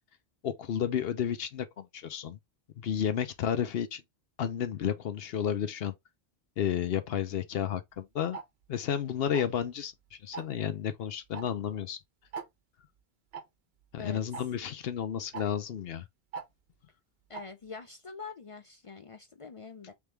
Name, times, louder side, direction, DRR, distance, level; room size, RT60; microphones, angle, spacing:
voice 1, 0.4-2.4 2.8-4.0 4.4-5.9 6.6-8.4 8.7-12.0 13.9-16.0, left 9 dB, 70° left, 0.9 m, -32 dB
Tick-tock, 8.3-8.4 9.3-9.6 10.3-10.6 11.3-11.4 11.7-11.8 12.3-12.5 13.3-13.4 14.3-14.4 15.3-15.4 16.3-16.5 17.3-17.4, right 6 dB, 80° right, 1.0 m, -39 dB
voice 2, 17.3-19.9, left 5 dB, 50° left, 0.4 m, -44 dB
3.5 x 3.4 x 3.1 m
omnidirectional pair, 1.1 m